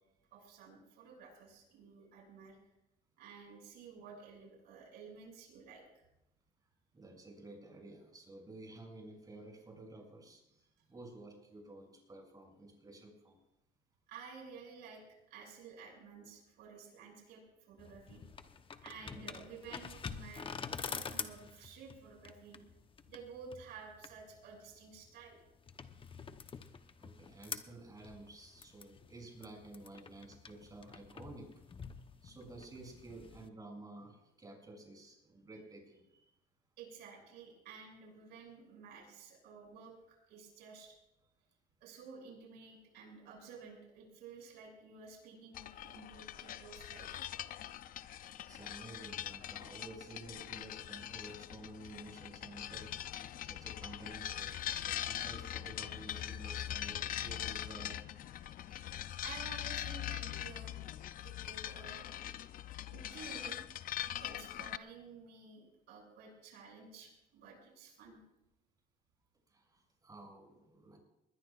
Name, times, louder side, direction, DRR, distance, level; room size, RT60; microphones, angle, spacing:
voice 1, 0.3-2.6 3.2-6.1 10.8-10.9 14.1-15.0 15.3-18.2 18.8-22.6 23.1-25.4 36.8-41.0 41.8-47.2 59.2-60.9 61.2-62.0 62.9-63.6 64.2-68.2, right 5 dB, 85° right, 0 dB, 7.0 m, -53 dB
voice 2, 6.9-13.4 19.0-19.4 26.6-31.6 32.2-36.2 48.3-52.9 53.4-58.2 60.2-60.4 69.5-71.0, right 2 dB, 20° right, 0 dB, 7.3 m, -52 dB
sound 1, 17.8-33.5, left 5 dB, 30° left, 1.0 m, -48 dB
sound 2, 45.5-64.8, left 11 dB, 55° left, 0.6 m, -42 dB
21.5 x 20.0 x 2.5 m, 0.87 s
cardioid pair, 110°, 17 cm